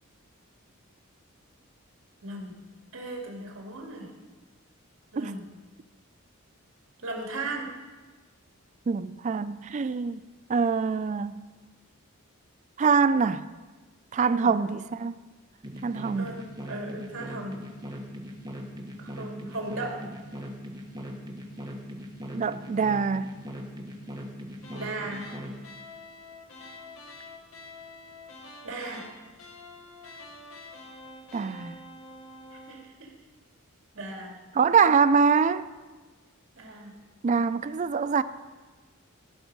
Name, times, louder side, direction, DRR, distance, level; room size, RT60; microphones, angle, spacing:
voice 1, 2.2-2.5 2.9-4.1 5.1-5.4 7.0-7.7 14.2-14.5 16.2-17.6 19.0-20.0 24.7-25.3 28.6-29.1 32.5-33.1 33.9-34.3 36.6-36.9, right 2 dB, 65° right, 2.2 m, -37 dB
voice 2, 8.9-10.2 10.5-11.4 12.8-13.5 14.1-15.2 15.8-16.3 22.3-23.4 31.3-31.8 34.5-35.7 37.2-38.2, right 5 dB, 35° right, 0.3 m, -24 dB
sound 1, 15.6-25.6, equal, 20° right, 1.2 m, -39 dB
sound 2, 24.6-32.9, left 2 dB, 75° left, 1.2 m, -47 dB
15.5 x 6.1 x 5.3 m
head